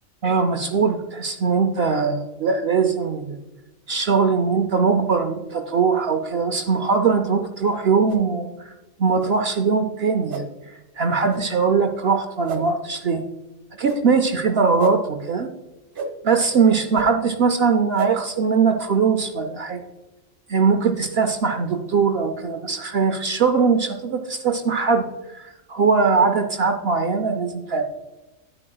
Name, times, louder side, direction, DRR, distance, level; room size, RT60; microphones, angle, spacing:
voice 1, 0.2-3.4 3.9-8.7 9.0-10.4 11.0-13.2 13.8-15.5 16.2-19.8 20.5-27.8, right 5 dB, 60° right, 7 dB, 0.7 m, -21 dB
sound 1, 8.1-8.2 9.2-9.3 10.3-10.4 11.3-11.4 12.5-12.6 13.8-14.0 14.8-14.9 15.9-16.1 16.9-17.1 17.9-18.1, right 6 dB, 40° right, 1.3 m, -30 dB
9.8 x 8.5 x 2.3 m, 1.1 s
omnidirectional pair, 1.4 m